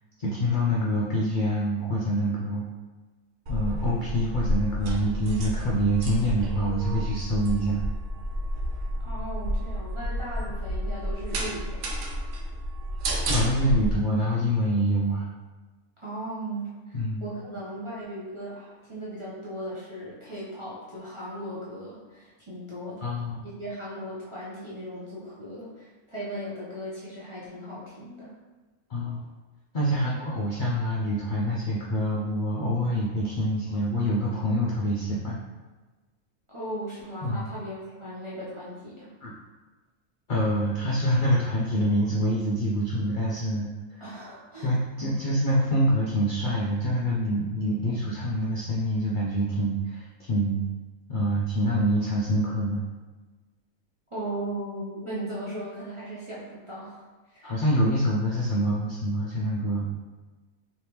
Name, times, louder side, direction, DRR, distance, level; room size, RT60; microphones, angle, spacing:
voice 1, 0.2-2.6 3.5-7.8 13.3-15.3 16.9-17.3 23.0-23.4 28.9-29.2 29.7-35.4 37.2-37.5 39.2-39.3 40.3-44.0 44.6-50.6 51.1-52.8 57.4-60.0, equal, 85° left, -6 dB, 0.4 m, -26 dB
sound 1, 3.5-14.0, equal, 65° right, 0.9 m, -30 dB
voice 2, 9.0-12.0 16.0-23.0 23.4-28.3 36.5-39.1 44.0-44.7 54.1-57.5, right 1 dB, 30° right, -9 dB, 0.5 m, -37 dB
3.3 x 3.1 x 2.9 m, 1.3 s
omnidirectional pair, 1.5 m